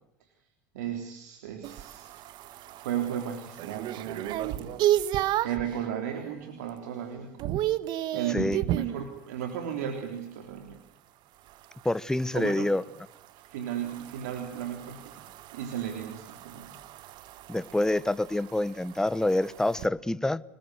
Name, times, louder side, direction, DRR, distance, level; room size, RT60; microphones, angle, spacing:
voice 1, 0.7-2.1 2.4-4.8 5.4-7.6 8.1-10.8 12.3-12.7 13.3-15.1 15.5-16.8, right 9 dB, 85° right, 3.6 m, -35 dB
sound 1, 1.6-5.7 6.2-6.6 6.9-9.0 11.5-19.9, right 13 dB, 60° right, 1.5 m, -33 dB
voice 2, 11.8-12.8 17.5-20.4, left 1 dB, 5° left, 1.1 m, -27 dB
26.0 x 21.0 x 8.1 m
supercardioid pair, 90°, 9 cm